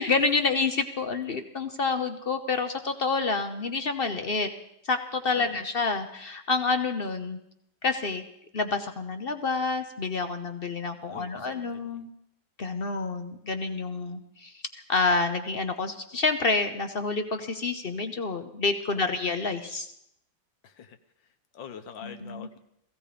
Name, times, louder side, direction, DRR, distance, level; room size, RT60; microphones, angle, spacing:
voice 1, 0.0-4.5 4.8-7.4 7.8-8.2 8.5-12.1 12.6-14.6 14.9-19.9 22.0-22.5, left 4 dB, 50° left, 8 dB, 0.6 m, -28 dB
voice 2, 11.0-12.0 20.6-21.0 21.2-22.6, left 7 dB, 70° left, 8 dB, 1.6 m, -45 dB
16.5 x 15.5 x 5.1 m, 0.77 s
omnidirectional pair, 2.2 m